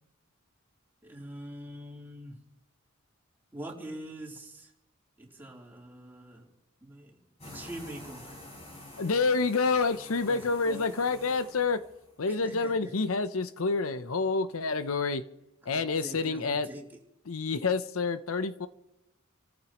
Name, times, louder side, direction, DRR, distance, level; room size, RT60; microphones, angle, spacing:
voice 1, 1.0-2.4 3.5-4.7 5.2-6.5 6.8-7.2 7.5-8.4 10.2-11.0 12.3-12.9 15.7-16.8, right 1 dB, 10° right, -2 dB, 3.5 m, -44 dB
sound 1, 7.4-12.2, left 1 dB, 30° left, 7.6 m, -48 dB
voice 2, 9.0-11.8 12.2-15.2 15.7-16.7 17.3-18.7, left 4 dB, 85° left, 12 dB, 0.8 m, -28 dB
29.0 x 14.5 x 3.1 m, 0.90 s
head